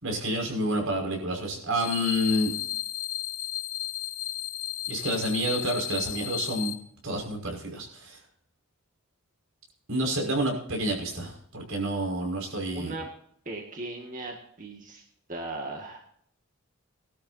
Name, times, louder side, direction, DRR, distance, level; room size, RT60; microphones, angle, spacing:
voice 1, 0.0-2.5 4.9-6.7 7.0-8.2 9.9-12.9, right 1 dB, 85° right, 1 dB, 5.7 m, -29 dB
sound 1, 1.8-6.7, left 14 dB, 80° left, 1.4 m, -34 dB
voice 2, 12.7-13.1 13.5-15.0 15.3-16.0, right 2 dB, 40° right, 0 dB, 2.0 m, -37 dB
20.0 x 12.5 x 2.8 m, 0.64 s
head